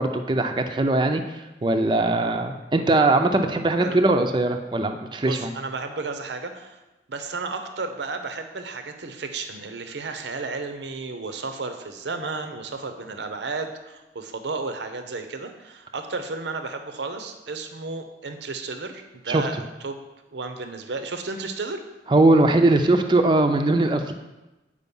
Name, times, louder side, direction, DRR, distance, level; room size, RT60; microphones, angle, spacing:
voice 1, 0.0-5.5 19.3-19.4 22.1-24.1, right 2 dB, 25° right, 5 dB, 0.4 m, -20 dB
voice 2, 5.2-6.8 7.1-19.6 19.8-20.0 20.3-21.8, right 3 dB, 85° right, 7 dB, 0.7 m, -33 dB
8.3 x 5.0 x 5.4 m, 1.1 s
head